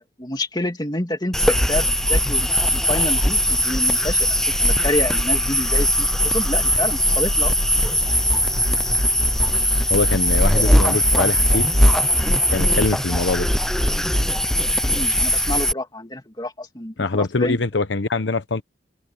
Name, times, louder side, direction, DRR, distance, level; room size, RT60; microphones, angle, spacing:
voice 1, 0.0-2.4 2.9-4.3 4.6-7.5 14.8-17.6, left 1 dB, 25° left, 2.8 m, -28 dB
sound 1, 1.3-15.7, equal, 5° left, 0.6 m, -19 dB
voice 2, 9.9-11.7 12.5-13.5 17.0-18.6, left 3 dB, 80° left, 0.9 m, -23 dB
head